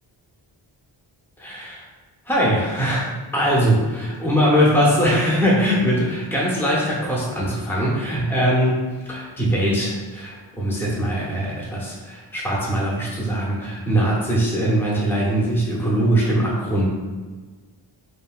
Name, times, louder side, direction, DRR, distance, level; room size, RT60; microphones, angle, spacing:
voice 1, 1.4-1.8 2.3-8.8 9.1-16.9, equal, 5° left, -5 dB, 0.6 m, -21 dB
2.9 x 2.6 x 2.3 m, 1.3 s
wide cardioid pair, 100°, 47 cm